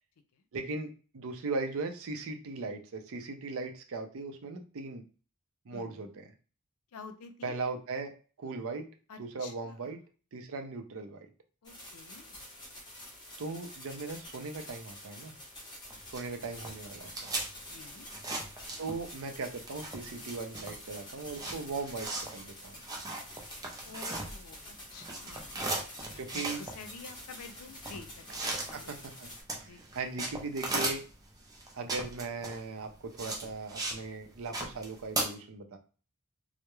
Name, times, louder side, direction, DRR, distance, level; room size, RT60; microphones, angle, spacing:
voice 1, 0.5-5.0 5.7-6.3 7.4-8.1 8.4-8.9 9.2-10.0 10.3-11.2 13.4-15.4 16.1-17.3 18.8-22.8 26.2-26.6 28.5-29.3 29.6-31.0 31.7-35.8, right 3 dB, 65° right, 5 dB, 0.5 m, -38 dB
voice 2, 5.7-6.1 6.9-7.6 9.1-10.0 11.6-12.4 17.7-18.1 23.8-25.7 26.0-28.9 29.6-29.9, left 5 dB, 75° left, 8 dB, 0.4 m, -49 dB
sound 1, 11.6-29.4, left 1 dB, 20° left, 0.7 m, -48 dB
sound 2, 15.9-19.2 19.5-24.6 24.9-34.0 34.3-35.2, right 2 dB, 15° right, 0.5 m, -37 dB
2.3 x 2.0 x 2.9 m, 0.37 s
head